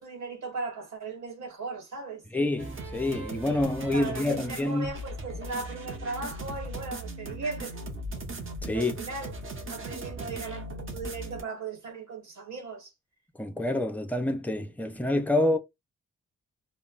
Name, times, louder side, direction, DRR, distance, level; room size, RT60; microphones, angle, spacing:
voice 1, 0.0-2.2 3.9-7.8 8.7-9.3 9.7-12.9, right 4 dB, 65° right, 1.2 m, -37 dB
voice 2, 2.3-4.9 8.6-8.9 13.4-15.6, left 1 dB, 5° left, 0.3 m, -27 dB
sound 1, 2.6-11.4, right 1 dB, 40° right, 0.7 m, -38 dB
2.2 x 2.0 x 3.7 m
wide cardioid pair, 165°, 31 cm